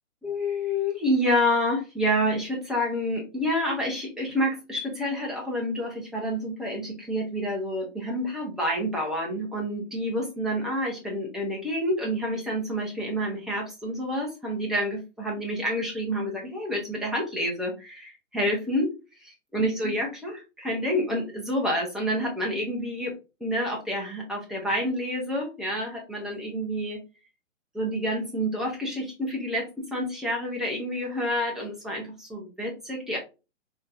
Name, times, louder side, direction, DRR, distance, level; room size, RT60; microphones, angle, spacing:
voice 1, 0.2-18.9 19.5-23.1 23.4-27.0 27.7-33.2, equal, ahead, -2 dB, 0.8 m, -28 dB
5.2 x 3.0 x 2.5 m, 0.29 s
hypercardioid pair, 135°, 38 cm